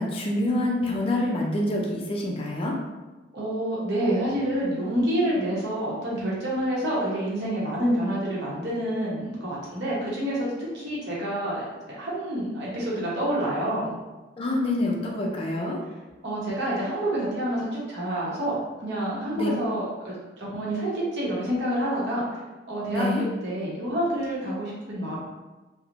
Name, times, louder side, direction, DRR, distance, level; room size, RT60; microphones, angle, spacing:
voice 1, 0.0-2.8 14.4-15.8 19.3-19.5 22.9-23.2, left 1 dB, 30° left, -2 dB, 0.4 m, -26 dB
voice 2, 3.3-10.5 10.7-13.9 16.2-20.1 20.4-22.4 22.7-23.1 23.4-25.2, right 1 dB, 60° right, -6 dB, 0.8 m, -28 dB
2.9 x 2.0 x 2.4 m, 1.2 s
head